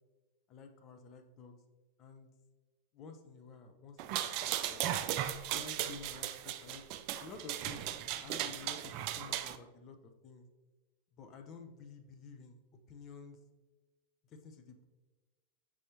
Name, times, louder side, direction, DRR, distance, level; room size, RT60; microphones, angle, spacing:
voice 1, 0.5-1.6 2.0-2.3 2.9-4.9 5.5-6.8 7.2-10.5 11.1-12.6 12.9-13.4 14.3-14.9, left 4 dB, 35° left, 5 dB, 0.6 m, -51 dB
sound 1, 4.0-9.6, right 11 dB, 45° right, 0.3 m, -37 dB
6.2 x 5.3 x 2.8 m, 1.2 s
figure-of-eight pair, 90°, 0 cm